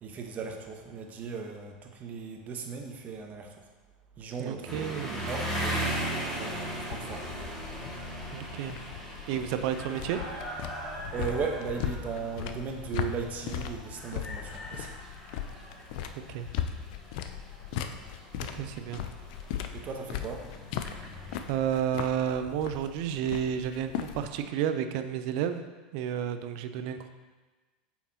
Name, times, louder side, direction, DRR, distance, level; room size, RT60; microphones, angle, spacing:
voice 1, 0.0-3.5 4.2-5.9 6.3-7.2 11.1-15.0 19.7-20.5, right 5 dB, 35° right, 3 dB, 1.1 m, -37 dB
voice 2, 4.4-5.2 8.3-8.8 9.3-10.2 16.3-16.5 18.4-19.0 21.5-25.6 25.9-27.1, right 9 dB, 60° right, 9 dB, 0.6 m, -31 dB
sound 1, 4.7-21.4, right 1 dB, 10° left, 2.1 m, -38 dB
sound 2, 6.1-24.5, left 9 dB, 65° left, 0.5 m, -38 dB
8.5 x 5.8 x 2.9 m, 1.3 s
hypercardioid pair, 105°, 5 cm